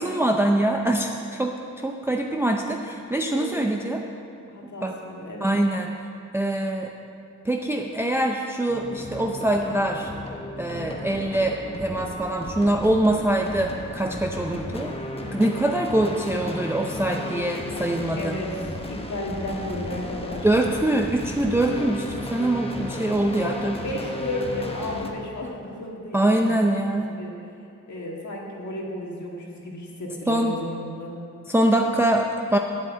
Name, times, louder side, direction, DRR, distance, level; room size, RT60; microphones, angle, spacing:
voice 1, 0.0-4.0 4.8-4.9 5.4-5.9 6.3-6.9 7.4-10.1 10.6-15.0 15.3-18.4 20.4-23.8 26.1-27.1 30.3-30.6 31.5-32.6, right 1 dB, 10° right, 2 dB, 0.5 m, -24 dB
voice 2, 3.3-3.9 4.5-5.5 18.2-20.5 23.3-27.5 27.9-31.2, left 1 dB, 65° left, -2 dB, 1.9 m, -34 dB
sound 1, 8.7-25.1, left 2 dB, 20° left, 1.0 m, -35 dB
7.7 x 7.6 x 8.5 m, 2.6 s
wide cardioid pair, 100°, 31 cm